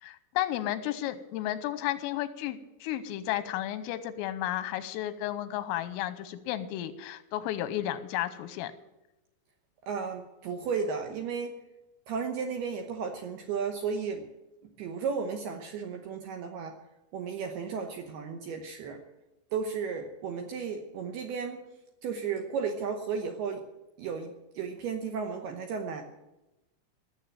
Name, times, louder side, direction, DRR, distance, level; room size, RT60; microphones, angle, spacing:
voice 1, 0.0-8.7, left 13 dB, 90° left, 13 dB, 3.4 m, -33 dB
voice 2, 9.9-11.5 12.1-14.3 14.8-16.7 17.1-19.0 19.5-21.6 22.0-23.6 24.0-26.0, right 6 dB, 75° right, 4 dB, 2.4 m, -34 dB
18.0 x 7.6 x 9.0 m, 0.99 s
omnidirectional pair, 5.9 m